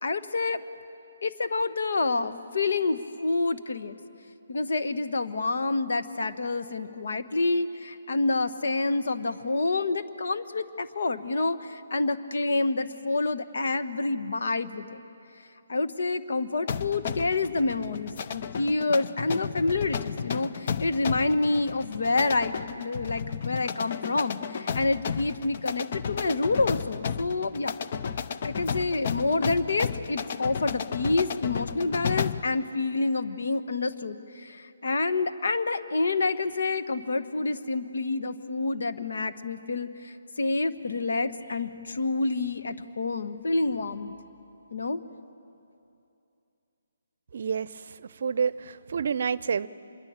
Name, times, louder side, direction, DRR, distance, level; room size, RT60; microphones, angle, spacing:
voice 1, 0.0-0.6 1.2-4.0 4.5-15.0 15.7-27.8 28.4-44.1 44.7-45.0, left 3 dB, 65° left, 9 dB, 1.2 m, -28 dB
sound 1, 16.7-32.5, left 6 dB, 45° left, 0.8 m, -33 dB
voice 2, 47.3-49.7, right 6 dB, 55° right, 19 dB, 0.6 m, -29 dB
26.0 x 22.5 x 8.9 m, 2.7 s
figure-of-eight pair, 145°, 0 cm